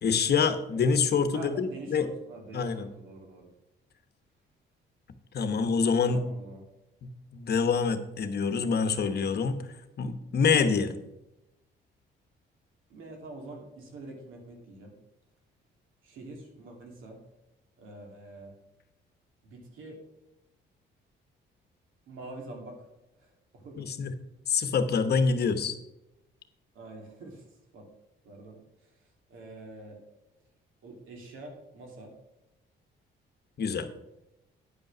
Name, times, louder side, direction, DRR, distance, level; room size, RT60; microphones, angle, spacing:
voice 1, 0.0-2.0 2.5-2.9 5.3-6.2 7.0-9.6 10.0-11.0 23.8-24.1 24.5-25.7 33.6-33.9, left 5 dB, 55° left, 10 dB, 1.0 m, -26 dB
voice 2, 1.3-3.5 6.1-6.6 12.9-14.9 16.0-17.2 17.8-18.5 19.4-20.0 22.1-22.8 23.2-23.9 26.7-27.4 27.7-27.9 28.2-28.6 28.8-28.9 29.3-30.0 30.8-32.1, right 2 dB, 90° right, 1 dB, 2.5 m, -45 dB
9.9 x 5.4 x 6.1 m, 0.93 s
cardioid pair, 90°, 20 cm